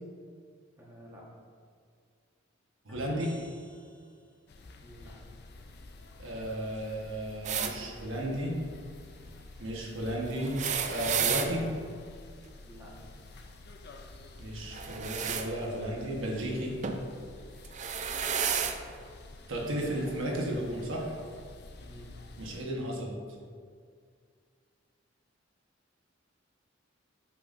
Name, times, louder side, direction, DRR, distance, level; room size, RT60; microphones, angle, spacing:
voice 1, 0.8-1.3 4.8-5.2 12.7-13.0 18.2-18.7 21.8-22.1, equal, 15° right, -5 dB, 1.2 m, -51 dB
voice 2, 2.8-3.3 6.2-8.6 9.6-10.6 10.9-11.7 14.4-16.7 19.5-21.1 22.4-23.1, right 1 dB, 85° right, -2 dB, 1.2 m, -34 dB
sound 1, 2.9-4.6, equal, 10° left, 0.8 m, -53 dB
sound 2, 4.5-22.6, left 2 dB, 55° left, 0.5 m, -49 dB
sound 3, 7.4-7.7 10.4-11.5 14.7-15.5 16.8-17.0 17.6-18.8 19.8-19.9 21.1-21.2, right 7 dB, 35° right, 0.4 m, -31 dB
8.4 x 5.8 x 2.6 m, 2.1 s
head